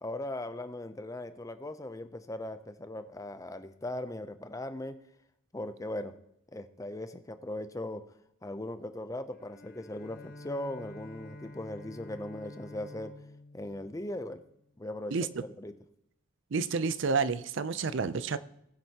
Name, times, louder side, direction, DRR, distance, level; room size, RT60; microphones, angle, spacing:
voice 1, 0.0-5.0 5.5-6.1 6.5-8.0 8.4-13.1 13.5-14.4 14.8-15.7, left 1 dB, 15° left, 0.5 m, -39 dB
Bowed string instrument, 9.3-14.8, left 1 dB, 40° left, 0.8 m, -49 dB
voice 2, 15.1-15.4 16.5-18.4, right 5 dB, 60° right, 0.5 m, -30 dB
20.0 x 7.9 x 2.9 m
head